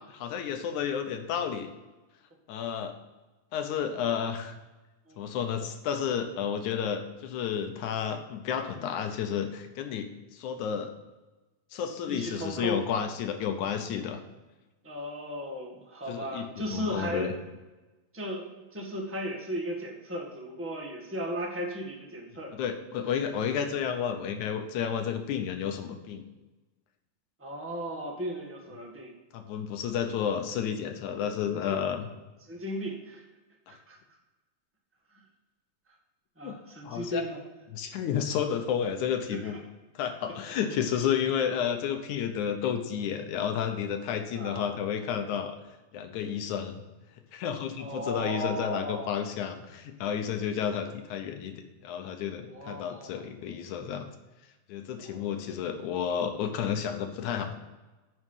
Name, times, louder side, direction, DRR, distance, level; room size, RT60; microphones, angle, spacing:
voice 1, 0.1-1.7 2.5-2.9 3.5-4.5 5.2-10.9 11.7-14.2 16.1-16.5 16.7-17.3 22.5-26.2 29.3-32.1 36.4-36.6 36.8-37.3 37.7-39.6 40.0-45.6 45.9-46.8 47.3-54.1 54.7-57.5, left 8 dB, 75° left, 6 dB, 2.2 m, -31 dB
voice 2, 5.1-5.4 12.1-12.8 14.8-17.4 18.1-22.5 27.4-29.1 31.4-31.8 32.5-33.2 33.7-34.0 36.4-37.4 39.3-39.5 40.9-41.1 44.3-44.9 47.7-49.2 52.5-53.2 54.9-55.3, equal, 15° right, 0 dB, 0.5 m, -36 dB
9.4 x 6.1 x 5.5 m, 1.1 s
omnidirectional pair, 3.7 m